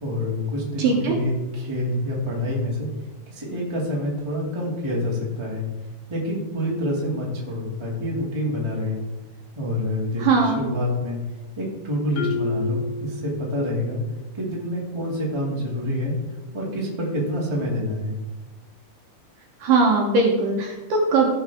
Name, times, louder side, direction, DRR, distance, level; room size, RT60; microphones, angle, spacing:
voice 1, 0.0-2.9 3.3-5.6 6.1-9.0 9.5-11.2 11.5-14.0 14.3-16.1 16.5-18.2, left 1 dB, 15° right, -4 dB, 1.1 m, -27 dB
voice 2, 0.8-1.2 10.2-10.6 19.6-21.3, right 3 dB, 70° right, 0 dB, 2.3 m, -20 dB
Marimba xylophone, 12.2-13.9, left 4 dB, 65° left, 2.6 m, -31 dB
15.0 x 5.7 x 3.6 m, 1.1 s
omnidirectional pair, 4.7 m